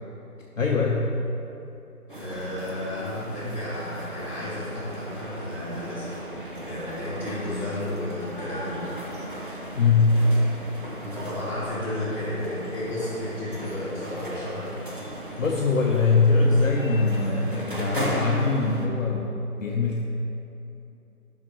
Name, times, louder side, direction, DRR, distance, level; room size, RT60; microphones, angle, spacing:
voice 1, 0.6-1.1 9.8-10.3 15.4-19.3 19.6-20.1, left 3 dB, 60° left, -2 dB, 0.8 m, -22 dB
voice 2, 2.1-6.1 6.6-8.9 11.0-14.7, left 1 dB, 5° right, -18 dB, 1.6 m, -33 dB
sound 1, 2.1-18.9, right 1 dB, 35° right, 0.6 m, -37 dB
10.5 x 5.7 x 2.9 m, 2.9 s
figure-of-eight pair, 160°, 45 cm